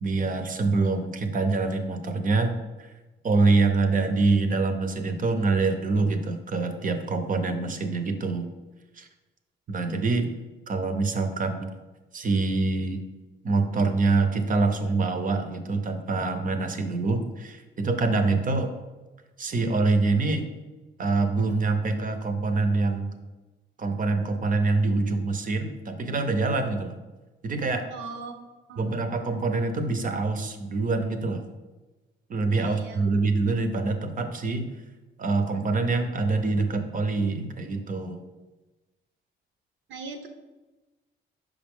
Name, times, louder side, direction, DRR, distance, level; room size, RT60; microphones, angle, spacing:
voice 1, 0.0-2.9 3.2-8.5 9.0-9.1 9.7-10.3 10.7-11.7 12.1-13.0 13.4-18.7 19.4-20.5 21.0-23.1 23.8-27.0 27.4-27.8 28.8-31.4 32.3-34.7 35.2-38.2, right 3 dB, 40° right, 7 dB, 0.8 m, -25 dB
voice 2, 27.9-28.3 28.7-29.0 32.5-33.0 39.9-40.3, right 4 dB, 75° right, 5 dB, 0.9 m, -39 dB
5.5 x 5.0 x 3.7 m, 1.2 s
cardioid pair, 90°, 20 cm